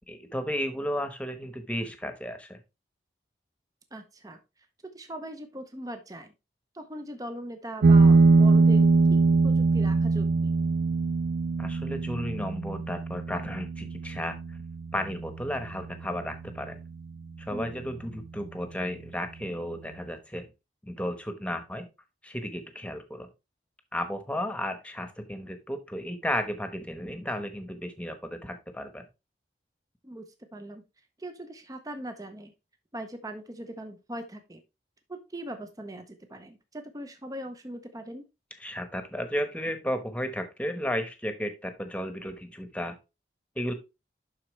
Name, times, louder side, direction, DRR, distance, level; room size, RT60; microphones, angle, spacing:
voice 1, 0.1-2.6 11.6-14.4 14.9-16.8 17.4-20.5 20.8-21.9 22.2-23.3 23.9-29.0 38.6-43.0 43.6-43.7, equal, 5° left, 7 dB, 1.1 m, -33 dB
voice 2, 3.9-4.4 4.9-6.3 6.7-10.5 17.5-17.8 30.0-30.2 30.5-30.8 31.2-32.5 32.9-34.6 35.1-38.2, right 1 dB, 20° right, 7 dB, 0.7 m, -40 dB
sound 1, 7.8-16.8, right 3 dB, 75° right, 0.4 m, -23 dB
11.5 x 4.3 x 3.2 m, 0.25 s
head